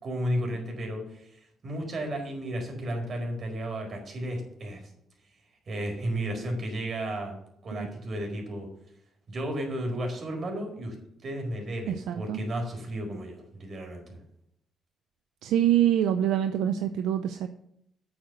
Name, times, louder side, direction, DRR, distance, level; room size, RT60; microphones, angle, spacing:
voice 1, 0.0-4.8 5.7-7.4 7.6-8.7 9.3-11.0 11.2-14.2, right 1 dB, 55° right, 2 dB, 4.6 m, -33 dB
voice 2, 11.9-12.4 15.4-17.5, right 10 dB, 85° right, 8 dB, 0.6 m, -25 dB
8.8 x 7.6 x 6.7 m, 0.76 s
supercardioid pair, 60°, 0 cm